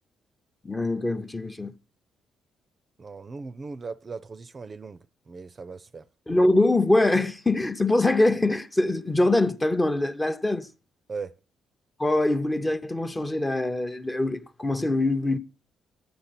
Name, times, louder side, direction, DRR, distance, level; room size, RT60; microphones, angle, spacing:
voice 1, 0.6-1.7 6.3-10.7 12.0-15.4, left 2 dB, 15° left, 0.7 m, -23 dB
voice 2, 3.0-6.1 11.1-11.3, right 4 dB, 35° right, 0.5 m, -38 dB
11.5 x 8.8 x 4.1 m
cardioid pair, 90°, 0 cm